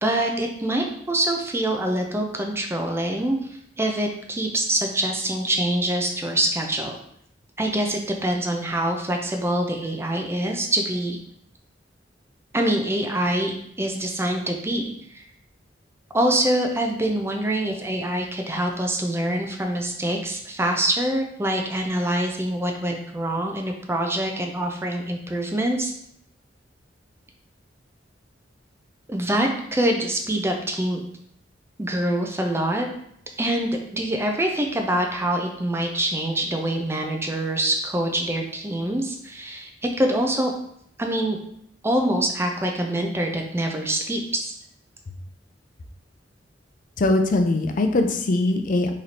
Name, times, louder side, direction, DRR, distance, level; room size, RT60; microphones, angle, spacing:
voice 1, 0.0-3.4 3.8-7.0 7.6-11.2 12.5-15.2 16.1-25.9 29.1-31.0 31.8-32.9 33.4-39.7 40.0-40.5 41.0-41.4 41.8-44.5, right 1 dB, 15° right, 2 dB, 0.5 m, -25 dB
voice 2, 47.0-48.9, left 2 dB, 45° left, 6 dB, 0.4 m, -21 dB
3.1 x 2.6 x 4.1 m, 0.70 s
head